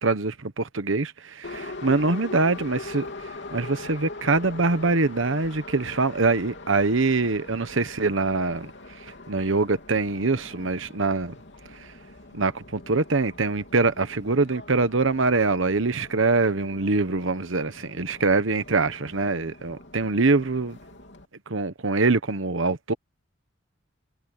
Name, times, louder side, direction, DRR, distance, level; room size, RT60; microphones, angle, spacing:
voice 1, 0.0-3.1 3.5-8.7 9.3-11.3 12.3-20.8 21.5-22.9, right 3 dB, 65° right, 1.1 m, -24 dB
Subway metro underground, 1.4-21.3, left 2 dB, 60° left, 3.6 m, -42 dB
head